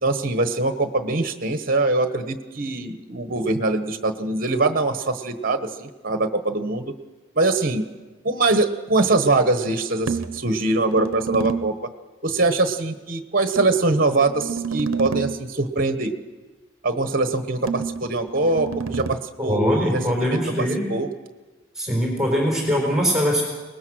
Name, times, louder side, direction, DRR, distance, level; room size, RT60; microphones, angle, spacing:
voice 1, 0.0-6.9 7.3-7.8 8.2-11.7 12.2-16.1 16.8-21.1, right 2 dB, 40° right, 9 dB, 1.2 m, -23 dB
sound 1, 10.1-11.8 13.6-15.5 17.7-19.2, right 5 dB, 75° right, 0.8 m, -29 dB
voice 2, 19.4-20.9 21.8-23.4, equal, 5° right, -2 dB, 4.3 m, -22 dB
23.0 x 20.0 x 6.3 m, 1.3 s
head